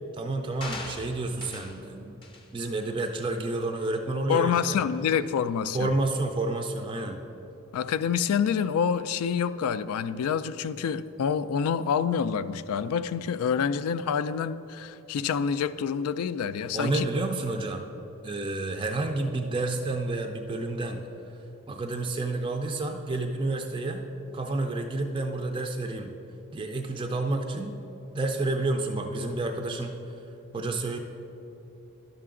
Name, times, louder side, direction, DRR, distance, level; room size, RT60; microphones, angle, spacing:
voice 1, 0.1-2.2 2.5-4.8 5.7-7.2 16.7-17.8 18.2-21.1 21.7-24.1 24.3-26.2 26.5-27.8 28.1-29.9 30.5-31.0, right 2 dB, 20° right, 4 dB, 0.4 m, -30 dB
sound 1, 0.6-1.8 2.2-2.5 3.0-3.2, left 2 dB, 25° left, 0.6 m, -40 dB
voice 2, 4.3-5.9 7.7-17.1, left 7 dB, 85° left, 14 dB, 0.3 m, -27 dB
10.5 x 6.7 x 3.7 m, 3.0 s
head